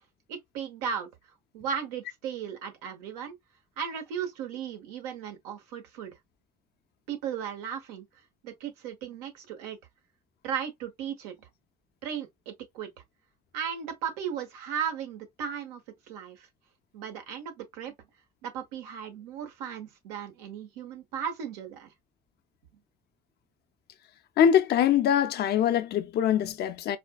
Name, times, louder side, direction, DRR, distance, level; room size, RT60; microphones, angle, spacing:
voice 1, 0.3-1.1 1.5-3.3 3.8-6.1 7.1-8.1 8.4-9.8 10.4-11.4 12.0-12.9 13.5-15.8 16.1-16.5 16.9-17.9 18.4-21.9, right 8 dB, 80° right, 0.9 m, -36 dB
voice 2, 24.4-27.0, left 9 dB, 55° left, 0.6 m, -23 dB
4.2 x 2.3 x 2.3 m
hypercardioid pair, 60°, 20 cm